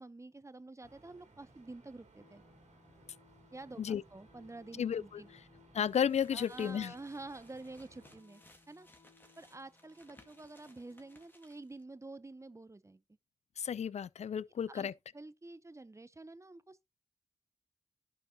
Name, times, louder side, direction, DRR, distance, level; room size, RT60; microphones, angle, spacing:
voice 1, 0.0-2.4 3.5-3.8 4.1-5.3 6.3-8.4 8.7-8.9 9.4-13.0 14.7-14.9 15.1-16.9, right 2 dB, 25° right, 0.6 m, -49 dB
sound 1, 0.8-8.2, right 2 dB, 75° right, 2.3 m, -63 dB
sound 2, 2.2-11.3, left 4 dB, 35° left, 2.2 m, -66 dB
voice 2, 4.8-5.2 5.7-6.9 13.6-14.9, left 8 dB, 65° left, 0.4 m, -33 dB
sound 3, 5.9-11.8, left 1 dB, 15° left, 1.8 m, -63 dB
11.5 x 5.5 x 2.8 m
cardioid pair, 40°, 12 cm